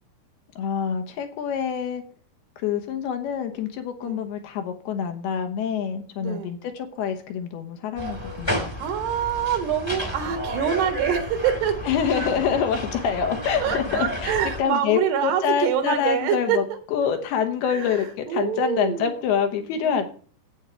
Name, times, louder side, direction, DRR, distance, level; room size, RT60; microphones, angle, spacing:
voice 1, 0.6-2.0 2.6-8.7 11.9-14.3 14.6-16.6 16.9-20.1, left 7 dB, 70° left, 6 dB, 3.1 m, -26 dB
voice 2, 6.2-6.5 8.0-11.8 13.6-16.6 17.6-19.3 19.8-20.1, right 9 dB, 70° right, 7 dB, 3.4 m, -26 dB
sound 1, 8.0-14.6, left 1 dB, 10° left, 1.2 m, -32 dB
12.0 x 8.9 x 4.6 m, 0.42 s
omnidirectional pair, 4.9 m